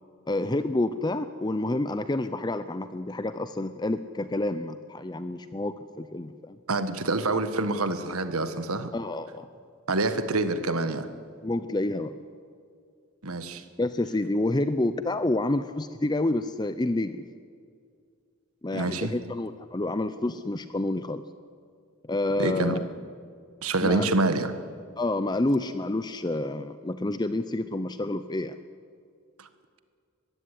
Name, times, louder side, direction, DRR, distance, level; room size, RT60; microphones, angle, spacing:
voice 1, 0.3-6.6 8.9-9.5 11.4-12.1 13.8-17.2 18.6-21.2 22.1-22.9 23.8-24.1 25.0-28.5, left 2 dB, 20° left, 11 dB, 0.5 m, -28 dB
voice 2, 6.7-8.9 9.9-11.1 13.2-13.6 18.7-19.1 22.4-22.8 23.6-24.5 29.4-29.5, right 2 dB, 80° right, 10 dB, 1.6 m, -26 dB
21.5 x 15.0 x 9.9 m, 2.2 s
head